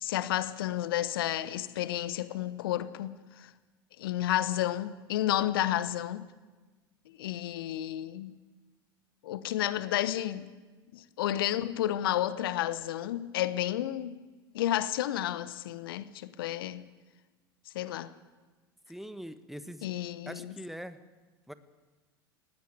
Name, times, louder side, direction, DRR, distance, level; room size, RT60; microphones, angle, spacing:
voice 1, 0.0-3.5 4.0-6.3 7.2-8.4 9.2-10.5 10.9-14.2 14.5-16.8 17.7-18.1 19.8-20.5, left 13 dB, 70° left, 1.0 m, -31 dB
voice 2, 18.9-19.9 20.3-21.0 21.5-21.6, equal, ahead, 1.4 m, -42 dB
19.0 x 17.0 x 8.8 m
figure-of-eight pair, 75°, 12 cm